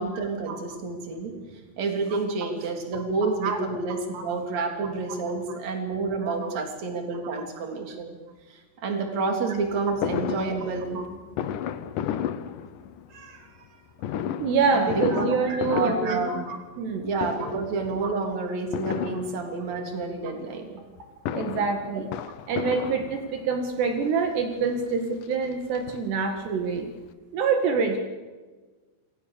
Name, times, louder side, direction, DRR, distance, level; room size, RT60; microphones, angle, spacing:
voice 1, 0.0-1.4 1.8-8.2 8.8-11.0 13.1-13.6 14.7-15.3 15.7-16.6 17.0-20.8, right 3 dB, 40° right, 3 dB, 4.3 m, -29 dB
voice 2, 6.2-6.6 11.0-11.1 14.4-16.2 16.8-17.1 18.0-18.1 21.3-22.1 22.5-26.9 27.3-28.0, right 5 dB, 75° right, 5 dB, 4.0 m, -26 dB
Fireworks, 10.0-13.2 14.0-16.9 17.2-17.8 18.7-19.8 21.0-23.6 24.4-24.5 24.8-24.9 25.2-26.5 26.8-26.9 27.1-27.2, left 9 dB, 75° left, 2.1 m, -33 dB
27.5 x 24.0 x 7.0 m, 1.3 s
omnidirectional pair, 5.0 m